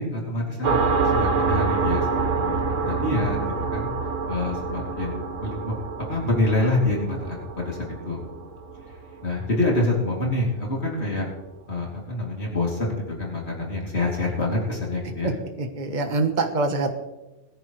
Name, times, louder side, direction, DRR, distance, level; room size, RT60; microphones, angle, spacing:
voice 1, 0.0-3.9 4.3-5.7 6.1-7.8 8.0-8.2 9.2-11.3 11.7-15.3, left 2 dB, 55° left, -2 dB, 3.0 m, -26 dB
sound 1, 0.6-9.9, right 4 dB, 70° right, 1.6 m, -27 dB
voice 2, 15.6-16.9, right 3 dB, 35° right, 5 dB, 1.3 m, -24 dB
21.0 x 10.0 x 3.2 m, 1.1 s
omnidirectional pair, 1.3 m